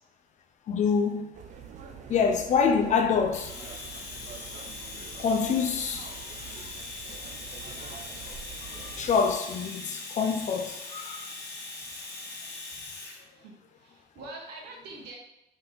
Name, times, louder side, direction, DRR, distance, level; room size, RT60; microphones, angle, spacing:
voice 1, 0.7-1.3 2.1-3.5 5.2-6.1 8.7-11.3, left 6 dB, 45° left, 0.5 m, -26 dB
sound 1, 1.3-9.3, right 7 dB, 45° right, 0.4 m, -45 dB
Domestic sounds home sounds, 3.3-13.2, left 3 dB, 75° left, 0.9 m, -41 dB
voice 2, 13.8-15.2, right 2 dB, 80° right, 1.1 m, -44 dB
3.7 x 2.8 x 3.9 m
cardioid pair, 110°, 17 cm